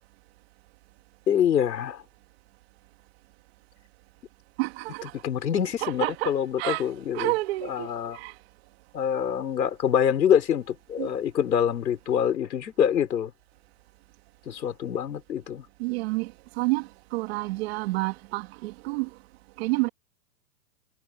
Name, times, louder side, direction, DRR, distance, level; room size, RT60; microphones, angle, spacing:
voice 1, 1.3-2.0 5.2-7.3 7.6-8.2 8.9-13.3 14.5-15.7, left 8 dB, 80° left, 5.5 m, -25 dB
voice 2, 4.6-5.1 5.8-6.8 7.1-8.3 11.0-11.1 15.8-16.3 16.6-19.1 19.6-19.9, right 22 dB, 40° right, 1.9 m, -29 dB
hypercardioid pair, 150°, 49 cm